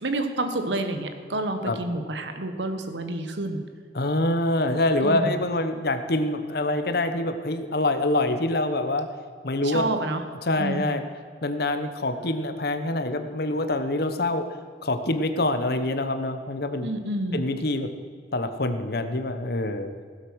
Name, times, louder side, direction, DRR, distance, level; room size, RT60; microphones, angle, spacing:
voice 1, 0.0-3.6 5.0-5.4 9.6-10.2 10.6-10.9 16.8-17.5, right 2 dB, 75° right, 7 dB, 1.3 m, -29 dB
voice 2, 3.9-9.1 9.4-9.9 10.4-11.0 11.4-14.5 14.8-16.9 17.3-17.9 18.3-19.9, left 2 dB, 60° left, 9 dB, 1.0 m, -25 dB
16.5 x 8.0 x 6.3 m, 2.1 s
head